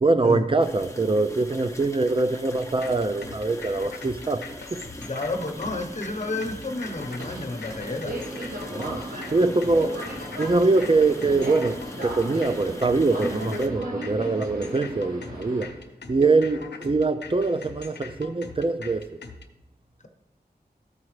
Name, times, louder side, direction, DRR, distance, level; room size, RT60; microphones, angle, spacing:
voice 1, 0.0-4.8 8.7-9.0 9.3-9.9 10.4-15.7 16.1-19.1, right 3 dB, 30° right, 0.4 m, -23 dB
sound 1, 0.6-13.7, left 1 dB, 15° left, 0.8 m, -42 dB
sound 2, 2.6-19.5, left 4 dB, 80° left, 0.7 m, -42 dB
voice 2, 5.0-8.2 9.7-9.9 14.3-14.5, left 2 dB, 45° left, 0.9 m, -31 dB
Subway metro underground, 6.1-15.7, right 1 dB, 55° right, 1.7 m, -36 dB
13.5 x 4.8 x 3.2 m
wide cardioid pair, 65°, 17 cm